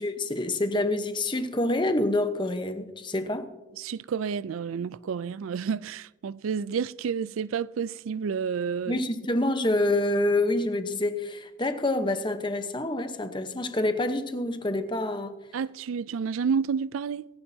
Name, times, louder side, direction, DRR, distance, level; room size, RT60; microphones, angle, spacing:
voice 1, 0.0-3.5 8.9-15.3, left 1 dB, 25° left, 0.9 m, -27 dB
voice 2, 3.7-9.0 15.5-17.3, right 6 dB, 80° right, 0.4 m, -30 dB
24.0 x 11.5 x 2.8 m
head